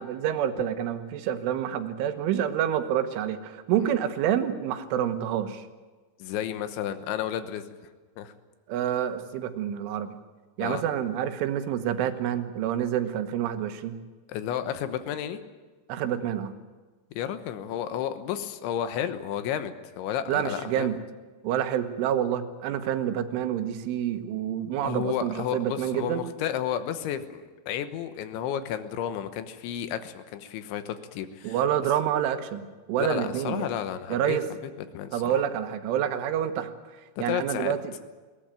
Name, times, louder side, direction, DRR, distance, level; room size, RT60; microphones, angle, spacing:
voice 1, 0.0-5.6 8.7-10.2 10.6-13.9 15.9-16.5 20.3-21.0 21.4-26.2 31.4-33.7 34.1-34.4 35.1-36.7 37.2-38.0, right 10 dB, 85° right, 8 dB, 3.7 m, -28 dB
voice 2, 6.2-7.6 8.2-8.3 10.6-10.8 14.3-15.4 17.2-21.0 24.8-31.6 33.0-35.4 37.2-37.7, left 10 dB, 75° left, 10 dB, 3.4 m, -32 dB
21.0 x 18.5 x 9.0 m, 1.3 s
omnidirectional pair, 5.5 m